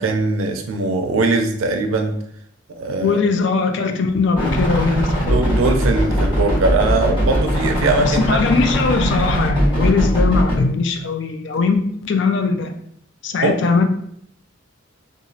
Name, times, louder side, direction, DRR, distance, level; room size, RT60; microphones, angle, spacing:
voice 1, 0.0-2.1 2.7-3.2 5.1-8.4 13.4-13.6, right 3 dB, 85° right, 5 dB, 0.4 m, -20 dB
voice 2, 3.0-5.6 8.0-12.7 13.2-13.8, left 4 dB, 60° left, 6 dB, 0.3 m, -20 dB
sound 1, 4.3-10.6, equal, 25° left, 1.3 m, -20 dB
2.9 x 2.4 x 2.6 m, 0.69 s
head